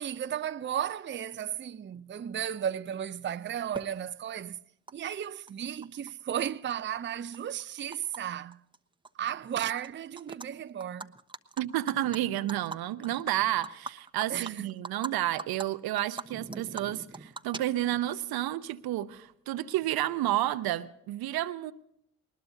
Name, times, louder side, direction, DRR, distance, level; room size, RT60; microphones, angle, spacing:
voice 1, 0.0-4.6 4.9-8.6 9.2-11.1 14.3-14.7, right 9 dB, 30° right, 0.6 m, -34 dB
Animal, 3.7-3.8 4.9-5.0 5.2-6.1 6.5-8.2 8.5-8.8 9.0-9.9 10.2-10.5 10.8-15.1 15.4-15.6 16.0-18.1, right 3 dB, 10° right, 1.0 m, -41 dB
voice 2, 11.6-21.7, right 14 dB, 65° right, 0.8 m, -31 dB
20.5 x 20.0 x 2.7 m
hypercardioid pair, 50°, 39 cm